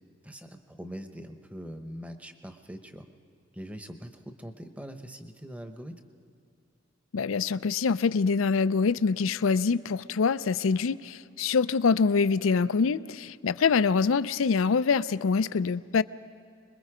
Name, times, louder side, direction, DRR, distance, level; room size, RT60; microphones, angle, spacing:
voice 1, 0.2-3.1 3.5-5.9, equal, 5° right, 8 dB, 1.0 m, -42 dB
voice 2, 7.1-16.0, left 5 dB, 85° left, 16 dB, 0.5 m, -25 dB
26.0 x 21.5 x 5.0 m, 2.4 s
head